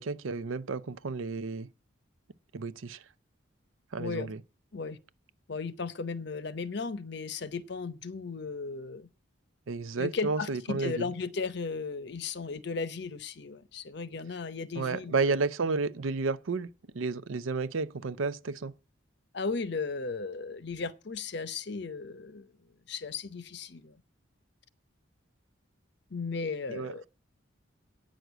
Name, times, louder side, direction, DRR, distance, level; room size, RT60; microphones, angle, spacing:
voice 1, 0.0-1.7 2.5-3.0 3.9-4.4 9.7-11.1 14.7-16.7 16.9-18.7 26.7-27.1, right 4 dB, 85° right, 0.6 m, -32 dB
voice 2, 4.0-4.3 4.7-5.0 5.5-9.1 10.0-15.3 19.3-22.5 22.9-24.0 26.1-27.0, left 4 dB, 55° left, 0.7 m, -36 dB
9.2 x 6.3 x 8.0 m
head